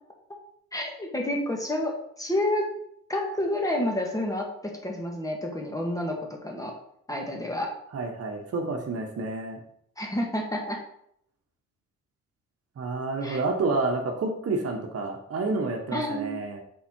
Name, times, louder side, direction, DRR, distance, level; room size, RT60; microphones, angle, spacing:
voice 1, 0.7-2.6 3.1-6.7 7.1-7.7 10.0-10.8 13.2-13.4 15.9-16.4, left 1 dB, 10° left, 1 dB, 1.5 m, -29 dB
voice 2, 7.9-9.6 12.8-16.6, right 3 dB, 50° right, 3 dB, 1.2 m, -29 dB
5.6 x 4.2 x 4.4 m, 0.71 s
cardioid pair, 90°, 30 cm